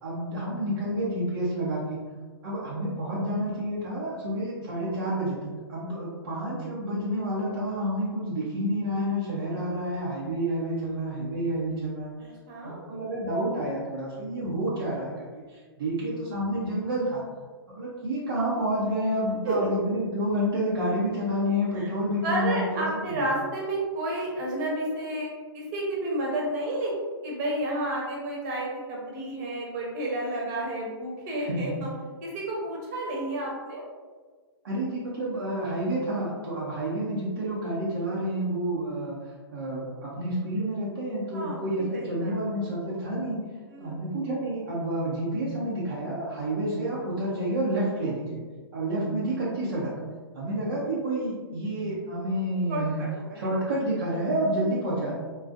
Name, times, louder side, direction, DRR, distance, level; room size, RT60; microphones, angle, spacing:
voice 1, 0.0-2.0 2.4-12.1 12.6-17.2 17.7-23.2 31.4-31.8 34.6-43.4 43.8-48.4 48.7-49.9 50.3-53.0 53.3-55.1, right 1 dB, 65° right, -7 dB, 0.9 m, -29 dB
voice 2, 12.2-12.8 19.4-19.7 21.7-21.9 22.2-26.9 27.2-31.9 32.2-33.8 41.3-42.3 43.7-44.0 48.9-49.1 52.7-53.5, right 1 dB, 50° right, -3 dB, 1.2 m, -31 dB
3.8 x 2.3 x 2.6 m, 1.5 s
figure-of-eight pair, 115°, 13 cm